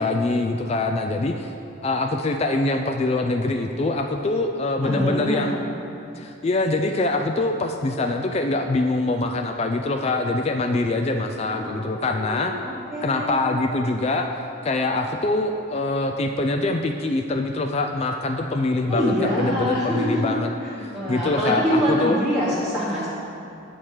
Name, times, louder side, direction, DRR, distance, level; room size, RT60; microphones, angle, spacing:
voice 1, 0.0-1.5 1.8-5.6 6.2-12.5 13.0-14.3 14.6-20.5 20.8-22.2, left 2 dB, 30° left, 4 dB, 0.3 m, -24 dB
voice 2, 4.8-5.5 11.5-13.4 18.9-20.3 20.6-23.1, equal, ahead, -12 dB, 1.1 m, -25 dB
8.7 x 4.4 x 6.5 m, 2.8 s
head